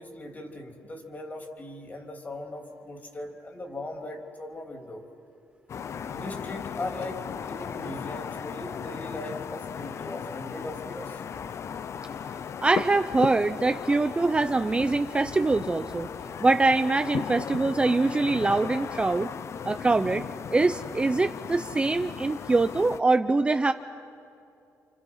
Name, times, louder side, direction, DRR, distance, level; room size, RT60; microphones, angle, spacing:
voice 1, 0.0-5.0 6.1-11.2, left 2 dB, 30° left, 2 dB, 3.4 m, -39 dB
sound 1, 5.7-23.0, left 7 dB, 50° left, 0.6 m, -36 dB
voice 2, 12.6-16.1 16.4-19.3 19.6-20.2 20.5-23.7, right 3 dB, 20° right, 9 dB, 0.6 m, -24 dB
29.5 x 28.5 x 5.6 m, 2.6 s
cardioid pair, 135°, 6 cm